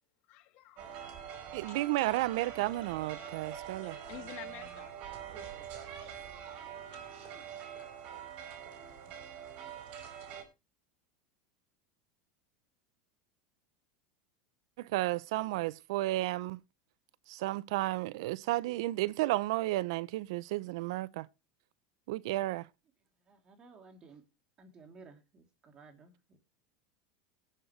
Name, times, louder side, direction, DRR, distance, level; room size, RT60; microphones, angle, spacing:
voice 1, 0.3-1.3 1.7-2.2 2.9-3.3 3.8-4.9 5.6-7.4, left 14 dB, 55° left, 1.9 m, -53 dB
sound 1, 0.8-10.4, right 8 dB, 55° right, 4.5 m, -45 dB
voice 2, 1.5-4.0 14.8-16.6 17.3-21.3 22.1-22.7, right 18 dB, 70° right, 0.4 m, -32 dB
voice 3, 23.2-24.2 24.6-26.4, right 4 dB, 30° right, 2.9 m, -56 dB
18.5 x 7.5 x 3.1 m
supercardioid pair, 115°, 3 cm